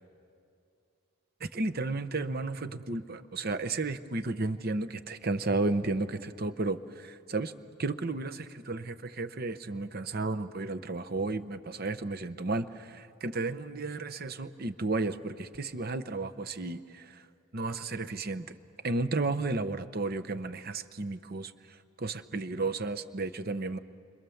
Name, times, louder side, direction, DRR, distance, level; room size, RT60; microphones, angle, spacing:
voice 1, 1.4-7.5 7.8-17.2 17.5-18.6 18.8-21.5 22.0-23.8, right 3 dB, 45° right, 10 dB, 0.8 m, -33 dB
29.5 x 25.5 x 7.1 m, 2.5 s
head